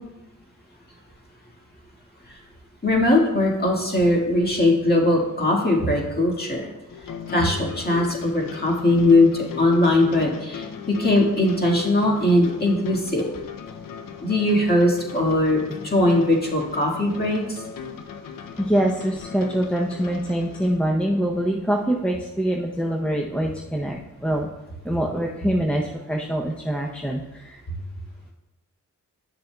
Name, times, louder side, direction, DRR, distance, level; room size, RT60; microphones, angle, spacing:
voice 1, 2.8-6.7 7.3-13.2 14.2-17.6, left 1 dB, 30° left, -2 dB, 1.8 m, -20 dB
sound 1, 6.9-20.8, left 7 dB, 90° left, 0.5 m, -38 dB
voice 2, 18.6-24.5 24.8-27.6, right 1 dB, 5° left, 0 dB, 0.6 m, -24 dB
10.5 x 6.7 x 2.3 m, 1.0 s
cardioid pair, 60°, 33 cm